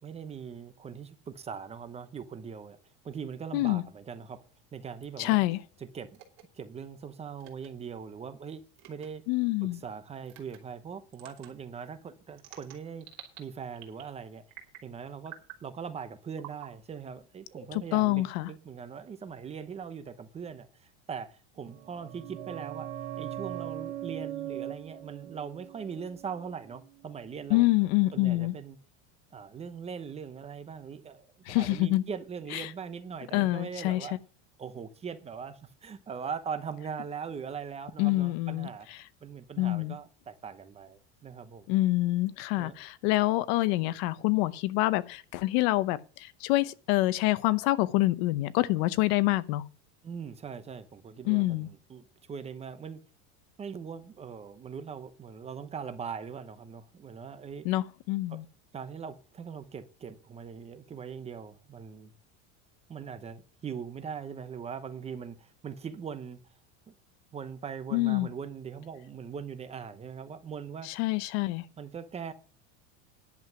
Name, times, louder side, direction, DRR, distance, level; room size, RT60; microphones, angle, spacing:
voice 1, 0.0-2.8 3.0-4.4 4.7-5.4 5.8-6.2 6.5-8.6 8.9-9.3 9.6-13.1 13.4-14.4 14.8-22.9 23.2-27.7 28.1-28.8 29.3-34.2 34.6-41.7 42.6-42.8 50.0-53.0 53.6-57.7 58.3-58.4 58.7-62.1 62.9-66.4 66.9-67.0 67.3-70.9 71.8-72.3, right 6 dB, 20° right, 0.8 m, -41 dB
voice 2, 3.5-3.8 5.2-5.6 9.3-9.8 17.7-18.5 27.5-28.5 31.5-32.0 32.5-32.7 33.3-34.1 38.0-38.7 39.6-40.0 41.7-49.6 51.2-51.7 57.6-58.4 67.9-68.3 70.8-71.6, left 18 dB, 60° left, 0.8 m, -26 dB
sound 1, 6.1-6.4 7.4-7.7 8.8-9.1 10.3-10.6 11.1-11.5 12.4-13.4 13.8-14.1 14.5-14.9 15.3-15.6 16.4-16.7 17.5-18.4, right 11 dB, 50° right, 3.0 m, -48 dB
sound 2, 21.7-27.1 27.3-27.4, right 12 dB, 90° right, 1.3 m, -40 dB
11.0 x 7.6 x 6.0 m
supercardioid pair, 155°, 34 cm